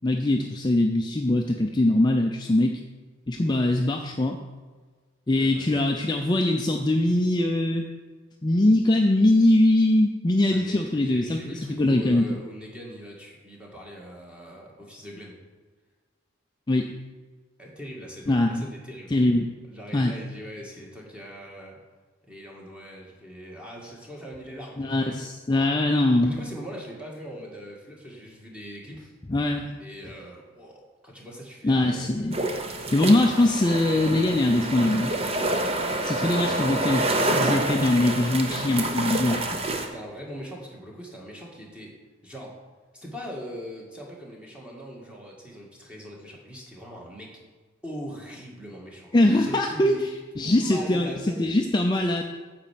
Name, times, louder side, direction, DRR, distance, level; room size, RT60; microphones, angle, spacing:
voice 1, 0.0-2.8 3.3-4.4 5.3-7.8 8.4-12.3 16.7-16.9 18.3-18.7 19.1-19.4 19.9-20.1 24.8-26.3 29.3-29.7 31.6-32.4 32.9-35.2 36.0-39.6 49.1-49.9 50.4-51.1 51.4-52.2, left 1 dB, 20° left, 2 dB, 0.4 m, -22 dB
voice 2, 5.3-5.8 10.5-15.4 17.6-19.2 19.7-21.8 22.2-25.2 25.5-25.7 26.2-29.1 29.8-33.2 36.3-37.0 39.7-42.0 42.2-42.6 42.9-47.4 47.8-50.1 50.4-51.4, equal, 5° right, -2 dB, 1.7 m, -41 dB
sound 1, 32.3-39.9, right 2 dB, 30° right, 0.8 m, -27 dB
9.2 x 4.4 x 7.4 m, 1.4 s
head